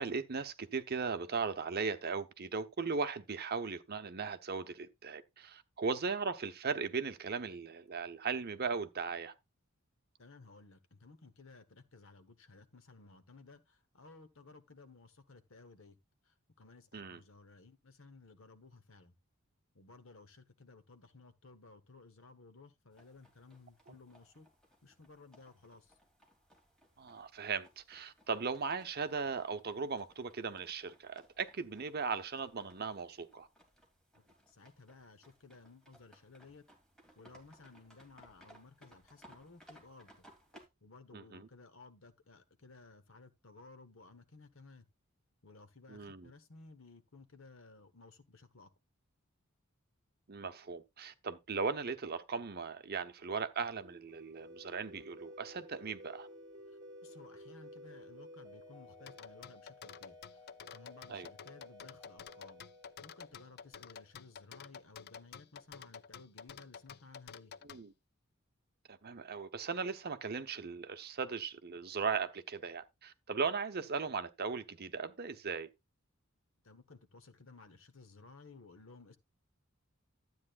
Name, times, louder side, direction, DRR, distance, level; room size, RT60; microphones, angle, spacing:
voice 1, 0.0-9.3 16.9-17.2 23.9-24.0 27.0-33.5 41.1-41.5 45.9-46.3 50.3-56.3 61.1-61.3 67.6-67.9 68.9-75.7, right 5 dB, 50° right, 0.9 m, -38 dB
voice 2, 10.2-16.0 16.2-19.1 19.7-24.5 24.8-25.9 34.1-36.6 37.2-40.3 40.8-44.8 45.4-48.7 56.7-62.6 63.0-67.5 76.6-79.2, left 3 dB, 70° left, 1.2 m, -57 dB
sound 1, 22.9-40.7, equal, 5° left, 2.8 m, -64 dB
sound 2, 53.8-64.2, left 1 dB, 20° right, 3.8 m, -54 dB
sound 3, 59.1-67.8, left 7 dB, 50° left, 0.4 m, -50 dB
12.5 x 8.6 x 2.5 m
head